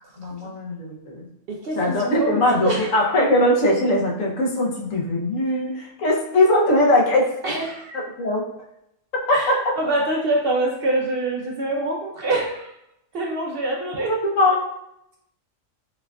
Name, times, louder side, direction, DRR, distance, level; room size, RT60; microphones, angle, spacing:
voice 1, 0.1-1.3 1.7-7.6 7.9-8.5 9.3-9.6 14.4-14.6, left 1 dB, 80° left, -1 dB, 1.1 m, -20 dB
voice 2, 1.5-3.1 7.4-8.0 9.3-12.7 13.1-14.1, right 2 dB, 60° right, -1 dB, 0.6 m, -25 dB
4.4 x 2.3 x 2.2 m, 0.80 s
omnidirectional pair, 1.3 m